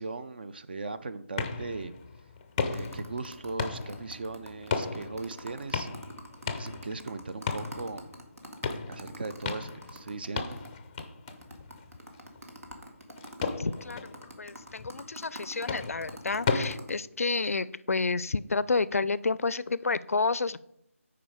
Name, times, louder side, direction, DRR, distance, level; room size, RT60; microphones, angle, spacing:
voice 1, 0.0-1.9 2.6-5.9 6.4-8.1 8.9-10.6, right 3 dB, 40° right, 11 dB, 0.5 m, -38 dB
sound 1, 1.4-16.8, left 4 dB, 15° left, 0.5 m, -36 dB
sound 2, 2.7-10.7 11.0-11.1 11.3-16.9, right 1 dB, 80° right, 1.6 m, -46 dB
voice 2, 13.6-14.1 14.4-20.6, left 4 dB, 75° left, 18 dB, 0.4 m, -30 dB
8.7 x 4.8 x 4.8 m, 0.77 s
figure-of-eight pair, 165°, 8 cm